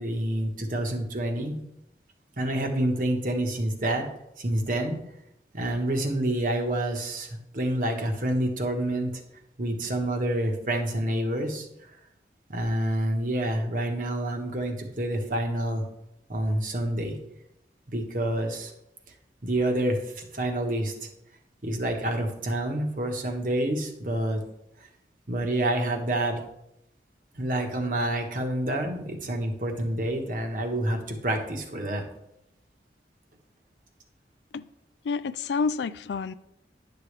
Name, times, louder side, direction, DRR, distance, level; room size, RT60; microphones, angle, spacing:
voice 1, 0.0-1.6 2.4-4.1 4.4-5.0 5.5-9.1 9.6-11.7 12.5-15.9 16.3-17.2 17.9-18.7 19.4-21.1 21.6-24.4 25.3-26.4 27.3-32.0, right 1 dB, 50° right, 1.3 m, -28 dB
voice 2, 35.0-36.3, left 5 dB, 80° left, 0.4 m, -28 dB
10.5 x 6.9 x 3.3 m
head